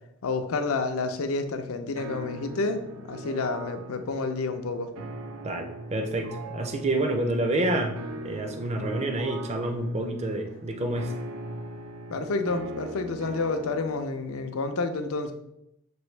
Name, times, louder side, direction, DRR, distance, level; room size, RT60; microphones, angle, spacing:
voice 1, 0.2-4.9 12.1-15.3, left 3 dB, 70° left, 7 dB, 0.5 m, -29 dB
sound 1, 2.0-14.0, right 2 dB, 75° right, 0.5 m, -41 dB
voice 2, 5.4-11.2, right 1 dB, 30° right, 4 dB, 0.5 m, -28 dB
6.1 x 2.6 x 3.2 m, 0.82 s
head